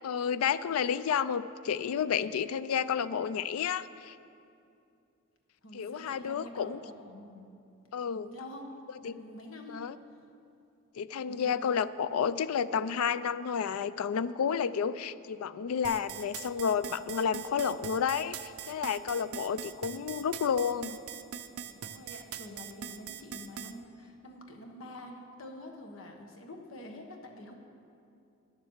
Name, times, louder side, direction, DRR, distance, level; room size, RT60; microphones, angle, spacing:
voice 1, 0.0-4.2 5.7-6.8 7.9-8.3 9.0-9.1 9.7-10.0 11.0-21.0, left 7 dB, 85° left, 15 dB, 0.4 m, -31 dB
voice 2, 5.6-7.5 8.1-8.7 9.0-9.8 10.1-10.2 11.2-11.5 19.0-19.5 21.5-27.5, left 1 dB, 70° left, 3 dB, 1.2 m, -47 dB
sound 1, 15.8-23.7, right 9 dB, 85° right, 0.5 m, -41 dB
10.5 x 7.4 x 7.2 m, 2.6 s
head